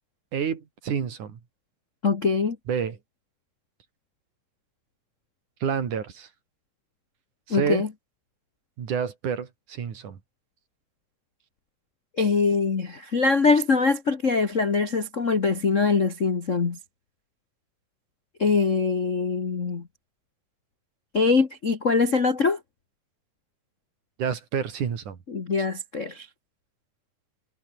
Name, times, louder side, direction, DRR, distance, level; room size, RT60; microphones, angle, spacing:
voice 1, 0.3-1.4 2.7-3.0 5.6-6.3 7.5-7.9 8.8-10.2 24.2-25.2, right 7 dB, 60° right, 4.1 m, -28 dB
voice 2, 2.0-2.6 7.5-7.9 12.2-16.8 18.4-19.8 21.1-22.6 25.3-26.3, left 4 dB, 50° left, 0.8 m, -23 dB
omnidirectional pair, 4.0 m